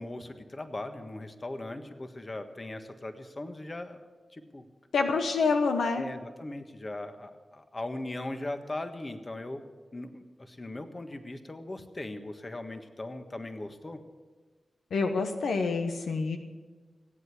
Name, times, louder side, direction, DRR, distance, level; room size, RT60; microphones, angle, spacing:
voice 1, 0.0-4.0 4.3-4.7 5.9-9.6 9.9-14.0, left 2 dB, 40° left, 7 dB, 1.5 m, -39 dB
voice 2, 4.9-6.0 14.9-16.4, left 4 dB, 90° left, 5 dB, 1.0 m, -27 dB
17.5 x 8.4 x 8.4 m, 1.4 s
cardioid pair, 40°, 0 cm